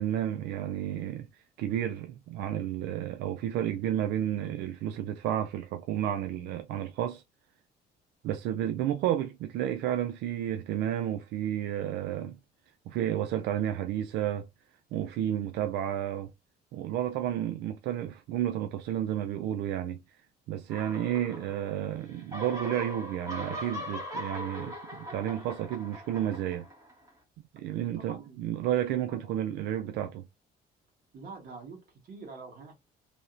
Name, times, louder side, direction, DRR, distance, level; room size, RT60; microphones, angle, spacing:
voice 1, 0.0-7.2 8.2-12.4 12.9-14.5 14.9-16.3 16.7-20.2 20.5-26.7 27.5-30.3, right 11 dB, 80° right, 0.4 m, -31 dB
sound 1, 20.7-21.8 22.1-27.1, equal, 20° right, 1.6 m, -40 dB
voice 2, 27.9-28.4 29.1-29.4 31.1-32.7, right 4 dB, 55° right, 2.0 m, -45 dB
3.5 x 2.8 x 2.5 m
cardioid pair, 110°, 17 cm